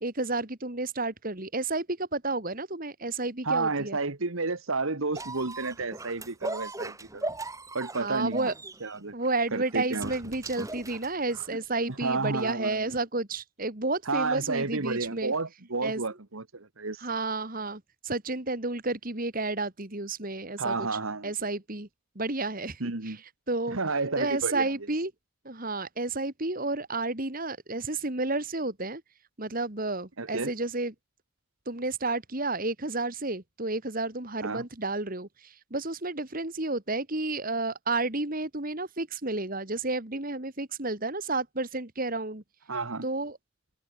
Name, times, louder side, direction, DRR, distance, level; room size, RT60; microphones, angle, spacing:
voice 1, 0.0-4.0 8.0-8.5 9.1-15.3 15.8-16.0 17.0-21.9 22.2-23.2 23.5-23.8 24.2-25.1 25.4-29.0 29.4-30.9 31.7-42.4 43.0-43.4, right 2 dB, 40° right, 2.2 m, -31 dB
voice 2, 3.4-7.3 7.7-8.5 8.8-9.1 9.5-10.1 12.0-13.0 14.1-17.0 20.6-21.3 22.8-23.2 23.7-24.7 30.2-30.5 34.4-34.6 42.7-43.1, right 3 dB, 65° right, 1.5 m, -31 dB
sound 1, 5.1-11.6 12.4-12.5, right 2 dB, 15° right, 4.4 m, -39 dB
head